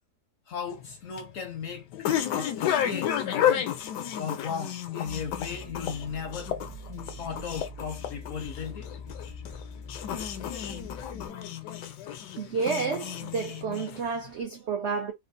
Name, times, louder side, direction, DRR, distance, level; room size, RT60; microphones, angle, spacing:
voice 1, 0.5-3.6 4.2-6.5 7.2-8.9, left 6 dB, 65° left, 0.8 m, -36 dB
sound 1, 0.7-14.3, left 10 dB, 85° left, 1.2 m, -32 dB
sound 2, 5.1-11.3, left 2 dB, 15° left, 0.5 m, -43 dB
voice 2, 12.4-15.1, right 5 dB, 70° right, 0.6 m, -30 dB
3.5 x 2.3 x 2.5 m
omnidirectional pair, 1.8 m